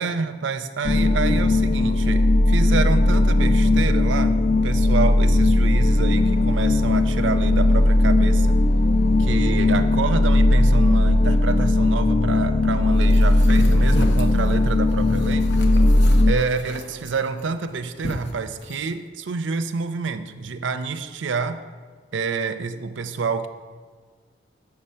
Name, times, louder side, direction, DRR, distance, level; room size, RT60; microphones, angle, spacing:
voice 1, 0.0-8.6 9.2-15.5 16.3-21.6 22.1-23.5, right 4 dB, 85° right, 10 dB, 0.5 m, -28 dB
sound 1, 0.8-16.3, left 2 dB, 40° left, 0.3 m, -18 dB
Boat Water vehicle / Engine, 5.9-11.5, equal, 15° right, 0.9 m, -44 dB
sound 2, 13.1-18.9, left 1 dB, 70° left, 0.9 m, -33 dB
6.9 x 6.6 x 5.5 m, 1.5 s
head